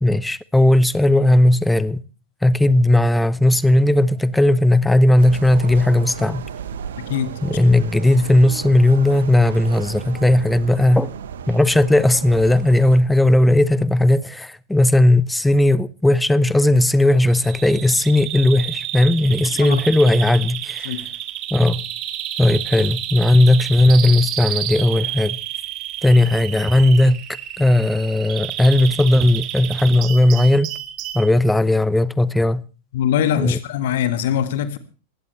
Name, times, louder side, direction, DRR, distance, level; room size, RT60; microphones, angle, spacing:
voice 1, 0.0-2.0 2.4-6.5 7.4-11.1 11.5-20.9 21.5-21.8 22.4-25.4 26.0-27.2 27.6-30.7 31.1-32.6 33.4-33.6, left 1 dB, 5° left, 0.8 m, -16 dB
sound 1, 5.2-13.0, right 8 dB, 60° right, 1.5 m, -34 dB
voice 2, 7.0-7.3 19.6-19.8 20.9-21.0 32.9-34.8, left 9 dB, 55° left, 1.8 m, -22 dB
Bird vocalization bird call bird song, 17.3-31.3, right 12 dB, 40° right, 2.1 m, -30 dB
20.5 x 16.5 x 3.3 m
figure-of-eight pair, 90°, 0 cm